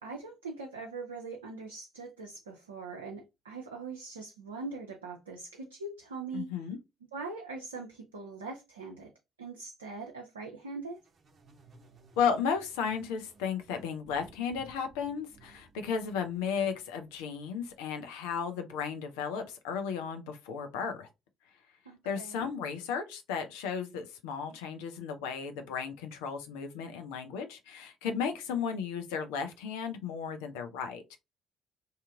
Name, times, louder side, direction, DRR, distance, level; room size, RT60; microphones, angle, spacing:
voice 1, 0.0-6.5 7.1-9.1 9.4-11.0 21.9-22.4, right 3 dB, 85° right, 0.4 m, -42 dB
voice 2, 6.3-6.8 12.2-21.1 22.0-31.2, left 6 dB, 75° left, 0.5 m, -34 dB
sound 1, 11.0-17.8, right 3 dB, 45° right, 0.8 m, -59 dB
2.7 x 2.5 x 3.4 m
figure-of-eight pair, 45°, 0 cm